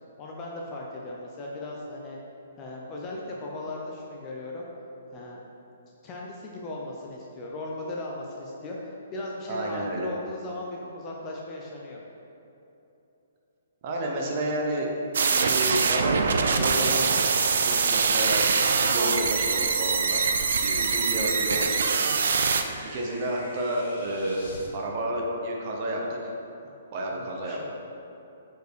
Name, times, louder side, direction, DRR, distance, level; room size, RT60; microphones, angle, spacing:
voice 1, 0.2-2.2 2.6-4.7 5.1-5.4 6.0-12.0 26.6-26.8 27.2-27.6, left 2 dB, 15° left, -3 dB, 0.5 m, -37 dB
voice 2, 9.5-10.1 13.8-14.9 15.2-17.1 17.5-18.5 18.8-20.2 20.6-22.1 22.8-26.3 26.9-27.6, right 1 dB, 25° right, -1 dB, 0.7 m, -30 dB
sound 1, 15.1-22.6, right 5 dB, 65° right, 0.4 m, -24 dB
sound 2, 17.3-24.7, left 1 dB, 50° left, 1.4 m, -46 dB
5.1 x 4.5 x 4.7 m, 2.9 s
hypercardioid pair, 175°, 0 cm